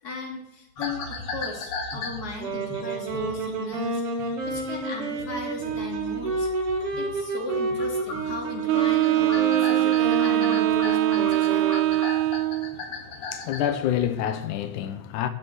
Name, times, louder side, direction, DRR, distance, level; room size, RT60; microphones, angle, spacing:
voice 1, 0.0-6.5 7.0-11.8, left 2 dB, 30° left, 2.9 m, -36 dB
sound 1, 0.8-7.2 7.5-13.8, left 3 dB, 50° left, 2.6 m, -38 dB
Wind instrument woodwind instrument, 2.4-11.9, right 2 dB, 50° right, 3.0 m, -30 dB
Wind instrument woodwind instrument 2, 8.7-12.8, right 15 dB, 80° right, 1.8 m, -22 dB
voice 2, 12.1-15.3, left 10 dB, 85° left, 2.4 m, -29 dB
14.5 x 6.8 x 8.0 m
omnidirectional pair, 3.5 m